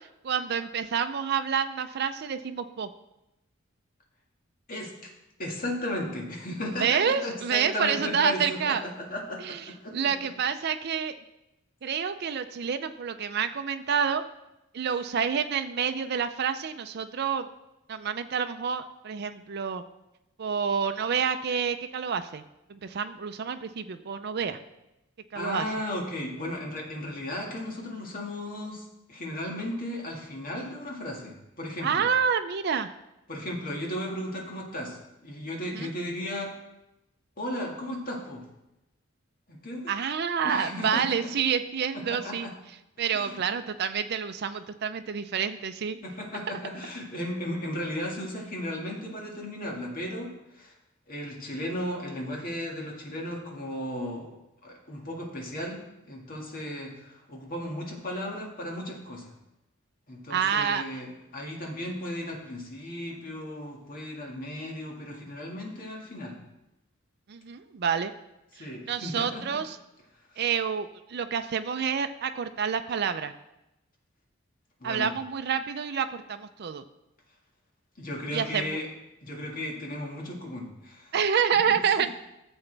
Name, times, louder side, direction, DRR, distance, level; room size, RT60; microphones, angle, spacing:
voice 1, 0.2-2.9 6.8-8.8 9.4-9.6 9.9-11.1 11.8-14.2 14.7-17.5 17.9-19.8 20.4-22.4 22.7-24.6 25.3-25.7 31.8-32.9 35.7-35.9 39.9-42.5 43.0-46.0 46.5-46.6 60.3-60.8 67.3-68.1 68.6-69.8 70.4-73.3 74.8-76.8 78.3-78.8 81.1-82.1, right 7 dB, 55° right, 8 dB, 0.5 m, -28 dB
voice 2, 4.7-5.1 5.4-10.0 25.3-32.1 33.3-36.5 37.4-38.5 39.5-39.9 40.4-41.3 41.9-42.5 43.1-43.4 46.0-50.7 51.1-54.3 54.6-59.3 60.1-66.4 68.5-69.6 74.8-75.1 78.0-78.9 79.2-81.1 81.7-82.1, left 1 dB, 45° left, 0 dB, 1.8 m, -35 dB
14.0 x 7.1 x 3.3 m, 0.92 s
head